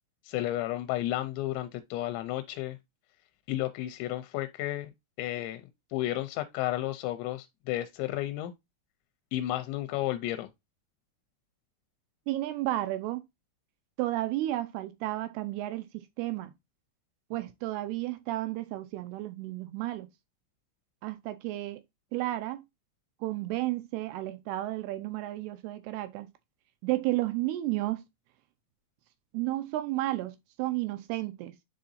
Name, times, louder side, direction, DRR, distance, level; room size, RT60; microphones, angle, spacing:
voice 1, 0.3-2.8 3.5-4.9 5.2-5.6 5.9-8.5 9.3-10.5, left 15 dB, 85° left, 2.9 m, -32 dB
voice 2, 12.3-13.2 14.0-16.5 17.3-20.1 21.0-21.8 22.1-22.6 23.2-26.3 26.8-28.0 29.3-31.5, right 16 dB, 85° right, 2.4 m, -32 dB
9.8 x 3.8 x 2.6 m
omnidirectional pair, 5.2 m